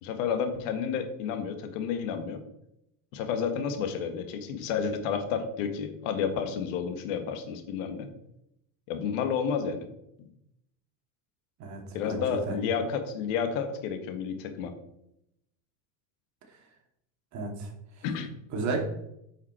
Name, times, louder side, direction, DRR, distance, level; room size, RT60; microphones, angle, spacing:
voice 1, 0.0-2.4 3.1-8.1 8.9-9.9 11.9-14.7 18.0-18.3, left 6 dB, 70° left, 8 dB, 1.6 m, -31 dB
voice 2, 11.6-12.6 16.4-16.7 17.3-18.8, right 3 dB, 45° right, 2 dB, 2.4 m, -35 dB
9.4 x 5.8 x 4.4 m, 0.81 s
supercardioid pair, 120°, 40 cm